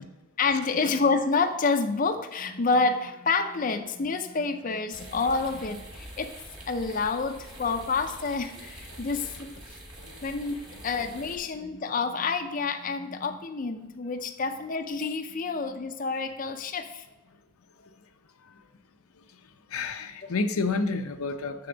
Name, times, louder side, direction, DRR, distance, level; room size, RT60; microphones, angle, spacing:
voice 1, 0.4-6.3 6.7-9.6 10.2-10.6 10.8-17.1, left 4 dB, 40° left, 0.4 m, -28 dB
sound 1, 4.9-11.4, right 1 dB, 20° right, 1.4 m, -45 dB
voice 2, 10.0-10.3 19.7-21.7, left 3 dB, 85° left, 0.6 m, -30 dB
6.9 x 6.9 x 3.9 m
head